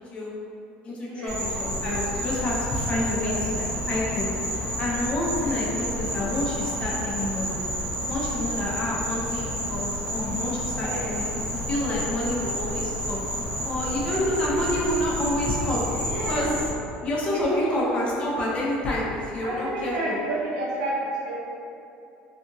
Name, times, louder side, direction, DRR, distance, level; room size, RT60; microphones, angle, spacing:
voice 1, 0.8-7.6 8.1-13.2 13.6-15.8 16.3-16.6 17.0-20.2, left 1 dB, 30° left, -5 dB, 0.6 m, -28 dB
Insect, 1.3-16.7, equal, 5° right, 0.8 m, -30 dB
voice 2, 10.8-11.2 14.1-14.5 15.9-16.5 17.4-18.0 19.4-21.4, right 2 dB, 90° right, -5 dB, 0.7 m, -31 dB
2.7 x 2.5 x 2.6 m, 2.7 s
cardioid pair, 125°, 4 cm